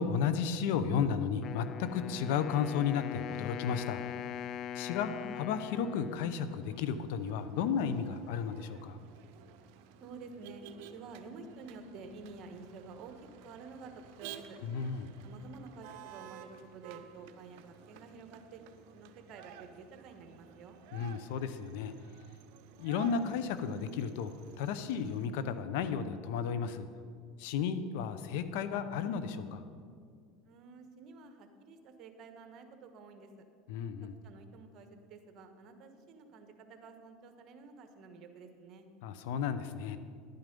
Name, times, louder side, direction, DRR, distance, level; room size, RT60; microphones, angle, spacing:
voice 1, 0.0-4.1 4.7-9.0 14.6-15.1 20.9-21.9 22.8-26.9 27.4-29.6 33.7-34.1 39.0-40.0, left 7 dB, 75° left, 11 dB, 0.8 m, -33 dB
Wind instrument woodwind instrument, 1.4-7.4, left 10 dB, 40° left, 0.3 m, -42 dB
Motor vehicle (road), 6.0-25.3, right 9 dB, 70° right, 0.8 m, -53 dB
voice 2, 10.0-14.6 15.2-18.6 18.9-20.8 30.4-33.3 34.2-38.9, right 4 dB, 50° right, 6 dB, 1.4 m, -50 dB
11.5 x 9.4 x 5.3 m, 2.1 s
supercardioid pair, 105°, 0 cm